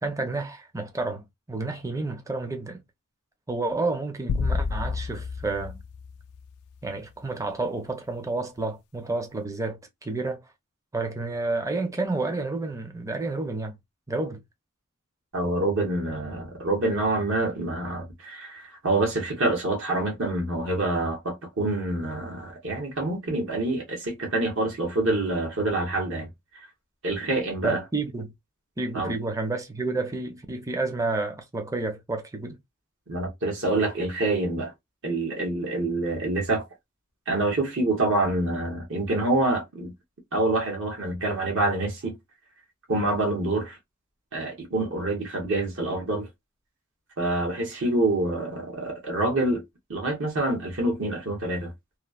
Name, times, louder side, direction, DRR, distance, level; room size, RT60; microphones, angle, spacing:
voice 1, 0.0-2.8 3.5-5.8 6.8-10.4 10.9-13.8 14.1-14.4 27.6-28.3 28.8-32.6, right 3 dB, 15° right, 0.6 m, -30 dB
sound 1, 4.3-6.8, left 4 dB, 90° left, 0.3 m, -30 dB
voice 2, 15.3-26.3 26.5-26.7 27.0-27.8 28.9-29.1 33.1-34.7 35.0-36.7 37.3-39.9 40.3-42.2 42.9-43.8 44.3-46.3 47.2-49.6 49.9-51.7, right 2 dB, 60° right, 1.0 m, -26 dB
3.0 x 2.0 x 2.3 m
head